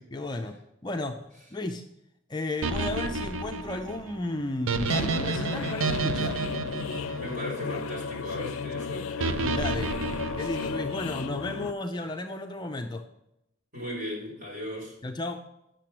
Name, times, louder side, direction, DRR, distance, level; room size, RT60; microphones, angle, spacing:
voice 1, 0.0-1.8 2.3-6.4 9.4-9.9 10.4-13.0 15.0-15.4, left 2 dB, 20° left, 4 dB, 0.4 m, -33 dB
sound 1, 2.6-7.9 9.2-11.1, right 3 dB, 70° right, 0.5 m, -30 dB
sound 2, 4.9-11.7, left 5 dB, 75° left, 0.4 m, -34 dB
voice 2, 7.2-9.4 13.7-15.0, left 1 dB, 45° right, -4 dB, 4.6 m, -37 dB
8.9 x 6.7 x 6.0 m, 0.84 s
head